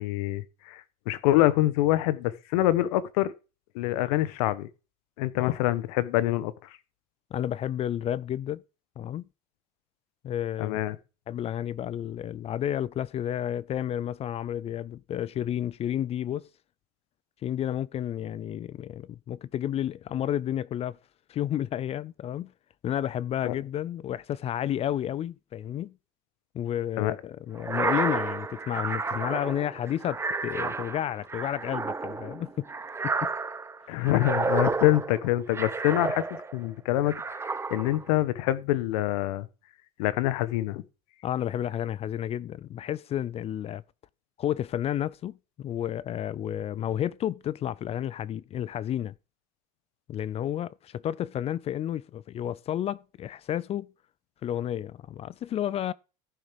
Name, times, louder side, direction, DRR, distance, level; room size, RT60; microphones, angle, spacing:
voice 1, 0.0-3.3 3.7-4.7 5.2-6.5 10.6-11.0 23.4-23.5 27.0-27.1 33.9-39.5 40.0-40.8, left 15 dB, 85° left, 1.2 m, -26 dB
voice 2, 7.3-8.6 9.0-9.3 10.2-10.8 11.3-16.5 17.4-21.0 21.3-22.5 22.8-25.9 26.5-32.7 33.0-33.3 41.2-43.8 44.4-49.1 50.1-53.9 54.4-55.9, left 11 dB, 35° left, 0.5 m, -31 dB
sound 1, 27.6-36.7 37.1-38.1, right 4 dB, 15° right, 0.8 m, -31 dB
14.5 x 6.3 x 5.2 m
cardioid pair, 135°, 19 cm